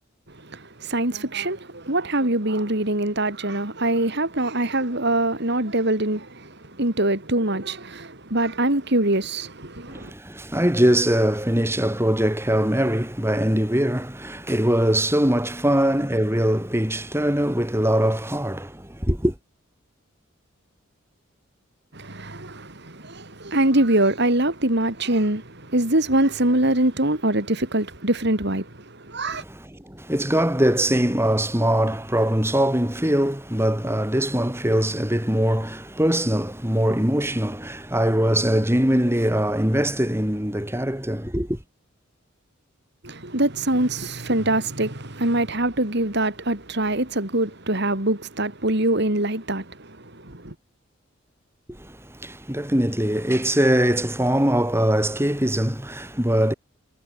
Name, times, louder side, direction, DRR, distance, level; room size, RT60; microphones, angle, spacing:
voice 1, 0.4-10.1 21.9-29.4 43.0-50.5, right 1 dB, 55° right, 4.0 m, -24 dB
voice 2, 9.9-19.3 29.3-41.6 51.8-56.5, right 1 dB, 10° right, 4.8 m, -22 dB
head